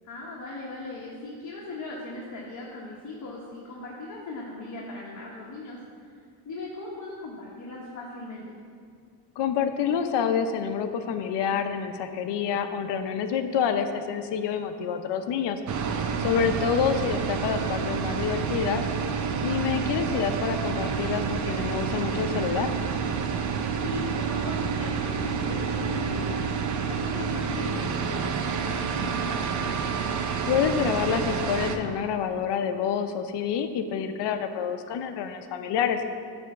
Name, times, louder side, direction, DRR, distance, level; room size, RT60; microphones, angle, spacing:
voice 1, 0.0-5.8 6.4-8.4 19.6-19.8 23.8-26.4 26.9-29.8, left 2 dB, 40° left, -4 dB, 1.3 m, -38 dB
voice 2, 9.4-15.6 16.2-18.8 19.4-22.7 30.5-36.0, left 7 dB, 70° left, 8 dB, 0.7 m, -27 dB
New Bus Engine, 15.7-31.8, right 6 dB, 40° right, 0.6 m, -29 dB
9.6 x 3.5 x 7.1 m, 2.2 s
cardioid pair, 135°, 43 cm